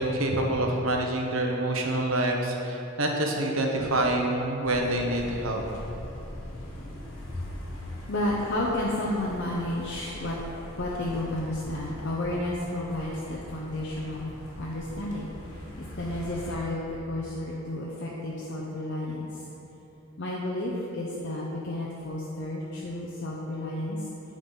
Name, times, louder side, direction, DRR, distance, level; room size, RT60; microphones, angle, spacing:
voice 1, 0.0-5.6, right 1 dB, 75° right, 1 dB, 1.0 m, -26 dB
sound 1, 4.6-16.6, left 1 dB, 85° left, 1.5 m, -42 dB
voice 2, 7.1-19.4 20.2-24.1, left 1 dB, 55° left, -4 dB, 0.7 m, -32 dB
8.8 x 3.9 x 5.4 m, 3.0 s
head